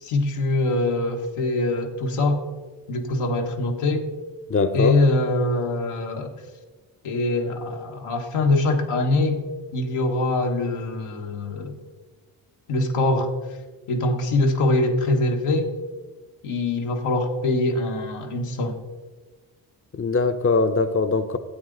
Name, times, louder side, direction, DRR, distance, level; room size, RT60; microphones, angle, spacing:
voice 1, 0.0-2.4 2.9-4.0 4.7-6.3 7.0-9.4 9.7-11.7 12.7-13.3 13.9-15.7 16.4-18.8, left 2 dB, 75° left, 2 dB, 1.4 m, -23 dB
voice 2, 4.5-5.0 19.9-21.4, left 4 dB, 25° left, 9 dB, 0.8 m, -21 dB
13.0 x 8.3 x 3.9 m, 1.3 s
supercardioid pair, 50°, 50 cm